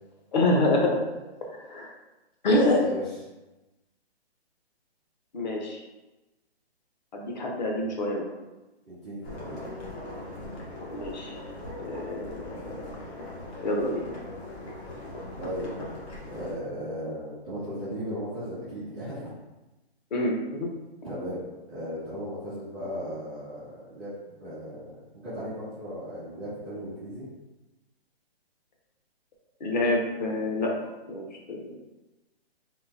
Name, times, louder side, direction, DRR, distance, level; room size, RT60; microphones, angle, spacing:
voice 1, 0.3-1.0 1.6-1.9 2.4-2.8 5.3-5.8 7.1-8.3 10.9-11.4 11.8-12.8 13.6-14.0 20.1-20.7 29.6-30.7 31.1-31.8, left 1 dB, 45° left, 0 dB, 0.6 m, -26 dB
voice 2, 2.5-3.0 8.9-9.6 15.4-15.7 16.3-19.2 21.0-21.4 21.7-27.2, equal, ahead, -17 dB, 0.4 m, -36 dB
sound 1, 9.2-16.6, left 1 dB, 80° left, 1.3 m, -40 dB
3.7 x 2.3 x 2.7 m, 1.0 s
hypercardioid pair, 160°, 32 cm